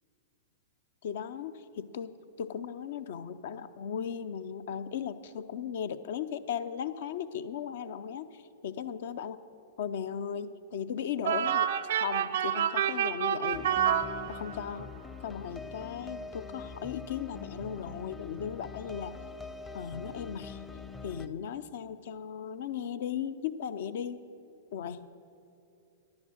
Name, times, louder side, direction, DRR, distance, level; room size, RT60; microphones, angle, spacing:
voice 1, 1.0-9.4 9.8-13.8 14.3-14.9 15.2-19.2 19.7-20.6 21.0-24.2 24.7-25.1, left 8 dB, 60° left, 12 dB, 0.6 m, -37 dB
sound 1, 11.2-14.8, right 9 dB, 65° right, 0.5 m, -28 dB
sound 2, 13.5-21.3, left 4 dB, 15° left, 0.6 m, -44 dB
10.5 x 10.5 x 6.4 m, 2.7 s
hypercardioid pair, 105°, 0 cm